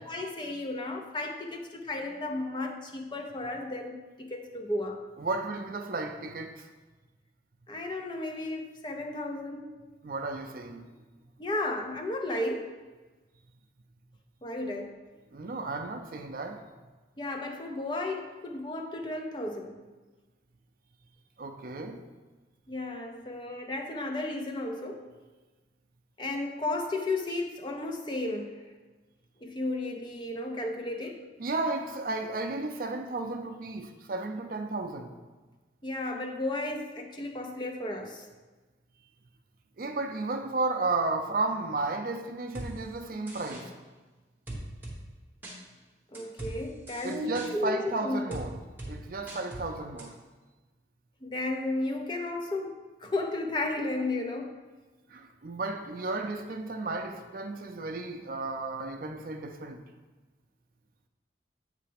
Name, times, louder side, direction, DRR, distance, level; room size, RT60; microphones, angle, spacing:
voice 1, 0.0-5.1 7.7-9.8 11.4-12.7 14.4-15.0 17.2-19.8 22.7-25.1 26.2-28.7 29.4-31.3 35.8-38.2 46.1-48.4 51.2-54.6, left 2 dB, 25° left, 0.5 m, -34 dB
voice 2, 5.2-6.7 10.0-10.9 15.3-16.6 21.4-22.0 31.4-35.2 39.8-43.7 47.0-48.6 48.9-50.2 55.1-59.8, right 3 dB, 50° right, 0.5 m, -33 dB
sound 1, 42.5-42.7 43.3-43.6 44.5-45.0 45.4-45.6 46.1-46.5 46.9-47.5 48.3-48.4 48.8-48.9 49.3-49.6 50.0-50.1, right 1 dB, 10° right, 1.1 m, -39 dB
7.8 x 3.3 x 5.0 m
head